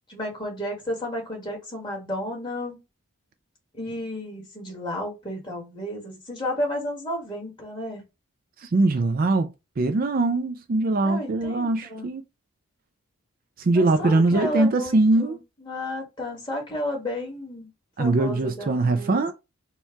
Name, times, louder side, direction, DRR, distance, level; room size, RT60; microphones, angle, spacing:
voice 1, 0.1-2.8 3.7-8.0 11.0-12.1 13.7-17.7 18.0-19.2, left 1 dB, 20° left, 1.7 m, -32 dB
voice 2, 8.6-12.2 13.6-15.4 18.0-19.3, right 2 dB, 40° right, 0.4 m, -22 dB
4.4 x 2.3 x 4.6 m
head